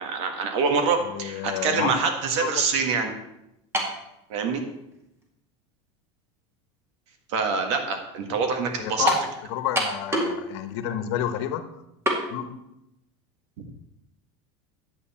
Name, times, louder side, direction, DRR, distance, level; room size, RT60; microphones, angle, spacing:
voice 1, 0.0-3.1 4.3-4.6 7.3-9.1, right 5 dB, 75° right, 4 dB, 1.8 m, -25 dB
voice 2, 1.0-2.0 2.4-2.5 8.8-9.2 9.5-11.6 12.3-12.6, left 11 dB, 70° left, 9 dB, 1.1 m, -29 dB
sound 1, 3.7-4.0 4.9-5.0 9.1-9.3 9.8-10.4 10.7-10.8 12.1-12.2, equal, 15° right, 2.0 m, -24 dB
11.0 x 8.2 x 4.3 m, 0.86 s
supercardioid pair, 135°, 15 cm